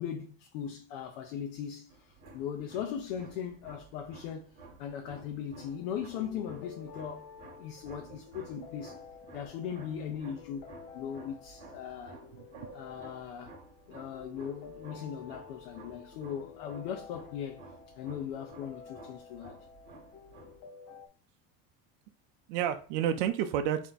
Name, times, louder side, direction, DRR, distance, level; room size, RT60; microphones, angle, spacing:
voice 1, 0.0-7.3 7.6-9.0 9.3-10.7 10.9-12.3 12.7-13.5 13.9-19.6, left 8 dB, 85° left, 0.7 m, -39 dB
sound 1, 1.9-20.6, right 3 dB, 35° right, 1.1 m, -53 dB
sound 2, 5.6-21.1, left 6 dB, 35° left, 0.6 m, -51 dB
voice 2, 12.3-12.7 22.5-23.9, right 10 dB, 75° right, 0.5 m, -31 dB
3.4 x 2.8 x 4.0 m
cardioid pair, 155°, 29 cm